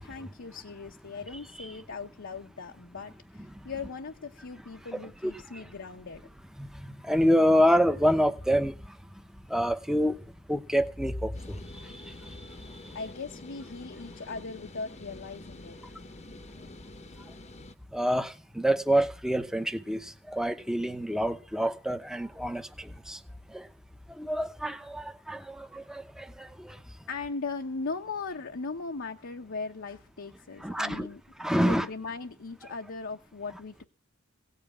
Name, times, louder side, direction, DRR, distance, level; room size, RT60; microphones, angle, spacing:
voice 1, 0.0-6.2 12.9-15.8 27.1-31.2 31.5-33.8, left 4 dB, 60° left, 0.9 m, -38 dB
voice 2, 7.0-8.7 9.5-10.1 10.5-11.6 17.9-20.0 20.3-23.2 23.5-23.6 24.2-26.8 30.6-31.1 31.4-31.9, equal, 5° right, 0.9 m, -27 dB
sound 1, 11.3-17.7, left 2 dB, 30° left, 0.9 m, -47 dB
17.0 x 5.7 x 9.0 m
head